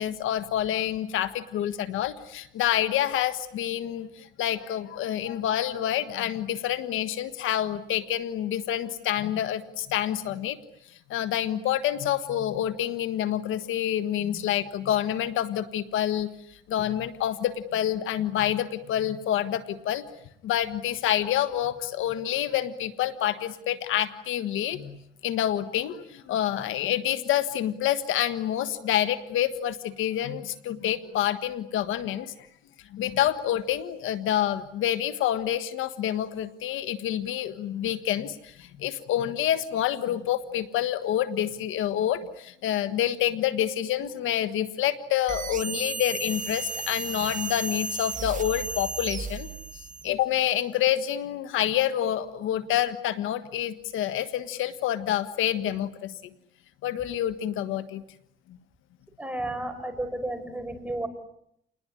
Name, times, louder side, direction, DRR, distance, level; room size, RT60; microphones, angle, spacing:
voice 1, 0.0-10.6 11.1-16.3 16.7-20.0 20.4-25.0 25.2-32.3 32.9-49.5 50.0-56.2 56.8-58.0, left 11 dB, 85° left, 13 dB, 1.5 m, -27 dB
sound 1, 45.3-50.2, right 4 dB, 40° right, 1.6 m, -34 dB
voice 2, 59.2-61.1, right 1 dB, 5° right, 7 dB, 5.6 m, -32 dB
29.0 x 20.5 x 9.9 m, 0.76 s
cardioid pair, 90°, 20 cm